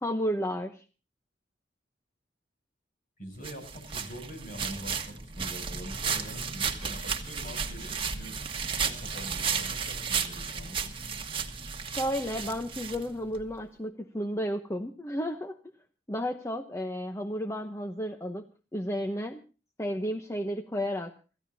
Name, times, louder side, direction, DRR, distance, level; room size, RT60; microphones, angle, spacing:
voice 1, 0.0-0.8 11.8-15.6 16.1-18.4 18.7-19.4 19.8-21.1, equal, 15° left, 6 dB, 0.8 m, -32 dB
voice 2, 3.2-8.4 8.7-10.9, equal, 45° left, 5 dB, 6.8 m, -44 dB
sound 1, 3.4-13.4, right 6 dB, 25° right, 1.5 m, -34 dB
27.0 x 14.5 x 2.7 m, 0.35 s
head